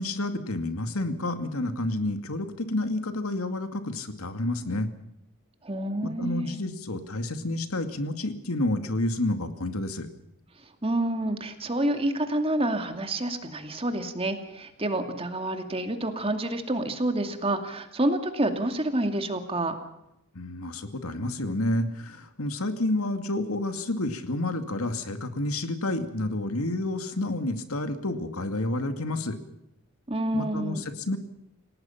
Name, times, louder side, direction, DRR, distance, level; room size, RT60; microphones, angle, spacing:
voice 1, 0.0-4.9 6.0-10.1 20.3-29.3 30.3-31.2, left 1 dB, 90° left, 8 dB, 2.3 m, -29 dB
voice 2, 5.6-6.5 10.8-19.7 30.1-30.9, right 1 dB, 25° right, 6 dB, 2.5 m, -28 dB
28.5 x 18.0 x 5.9 m, 0.85 s
head